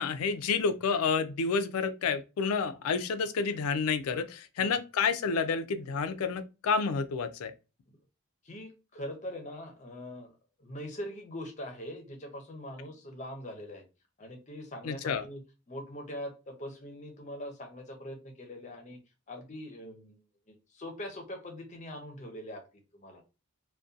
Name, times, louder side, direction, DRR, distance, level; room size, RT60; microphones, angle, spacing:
voice 1, 0.0-7.5 14.8-15.2, left 5 dB, 80° left, 0.4 m, -29 dB
voice 2, 8.4-10.3 10.6-13.8 14.2-15.4 15.7-19.0 19.3-20.2 20.5-22.6 22.9-23.2, left 1 dB, 35° left, 0.6 m, -42 dB
2.6 x 2.2 x 2.4 m
head